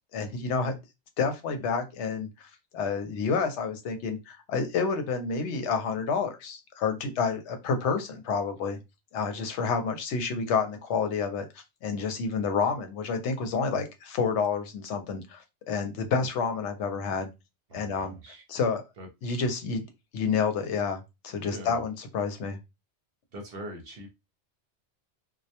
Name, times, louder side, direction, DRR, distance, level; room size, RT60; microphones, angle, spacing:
voice 1, 0.1-0.7 1.2-2.5 2.7-8.8 9.1-17.3 17.7-18.2 18.5-18.8 19.2-19.8 20.1-22.6, left 5 dB, 80° left, 7 dB, 0.9 m, -29 dB
voice 2, 17.7-18.4 19.0-19.4 21.4-21.8 23.3-24.2, right 1 dB, 60° right, 2 dB, 0.8 m, -42 dB
2.2 x 2.1 x 2.7 m, 0.24 s
omnidirectional pair, 1.2 m